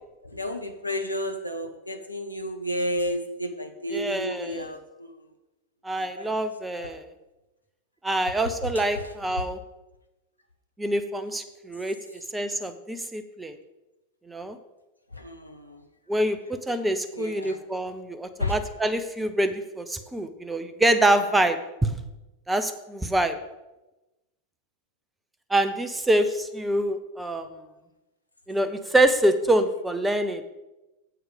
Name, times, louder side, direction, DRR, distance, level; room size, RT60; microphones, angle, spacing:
voice 1, 0.2-5.1 5.9-6.3 6.8-6.9 8.9-9.0 15.2-15.8 17.1-17.6 18.4-18.5, left 1 dB, 85° left, 5 dB, 0.9 m, -32 dB
voice 2, 3.9-4.7 5.8-7.0 8.0-9.6 10.8-12.0 12.3-13.5 14.3-14.6 16.1-21.9 22.5-23.4 25.5-27.5 28.5-30.4, right 1 dB, 10° right, 10 dB, 0.7 m, -25 dB
7.9 x 7.4 x 5.1 m, 1.0 s
figure-of-eight pair, 90°, 0 cm